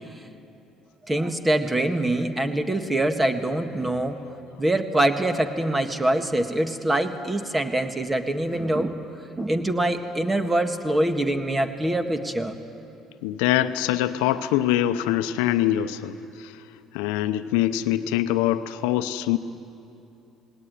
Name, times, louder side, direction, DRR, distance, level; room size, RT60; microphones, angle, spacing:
voice 1, 1.1-4.2 4.6-9.0 9.4-12.6, right 1 dB, 20° right, 7 dB, 1.8 m, -24 dB
voice 2, 13.2-16.2 16.9-19.4, left 13 dB, 85° left, 11 dB, 0.8 m, -23 dB
20.0 x 18.0 x 9.6 m, 2.8 s
hypercardioid pair, 65°, 0 cm